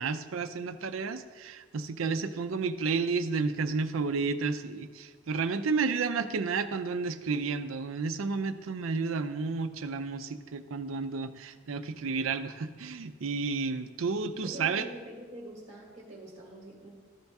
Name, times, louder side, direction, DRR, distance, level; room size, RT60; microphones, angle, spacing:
voice 1, 0.0-14.9, right 4 dB, 75° right, 11 dB, 0.5 m, -31 dB
voice 2, 14.4-16.9, right 1 dB, 30° right, -2 dB, 1.6 m, -45 dB
13.5 x 5.4 x 3.5 m, 1.4 s
head